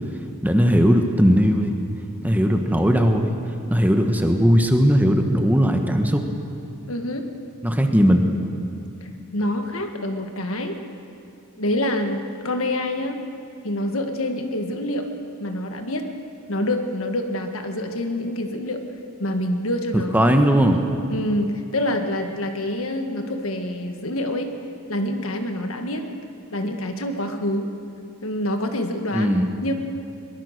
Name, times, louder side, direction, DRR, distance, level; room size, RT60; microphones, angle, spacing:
voice 1, 0.4-1.7 2.2-3.3 3.7-6.2 7.6-8.3 20.1-20.8 29.1-29.5, equal, 10° right, 4 dB, 1.2 m, -18 dB
voice 2, 6.9-7.3 9.3-10.8 11.6-13.2 13.6-15.1 15.4-16.1 16.5-18.8 19.2-20.2 21.1-24.5 24.9-26.1 26.5-27.7 28.2-29.7, left 1 dB, 65° left, 5 dB, 1.7 m, -26 dB
22.5 x 20.0 x 6.6 m, 2.6 s
head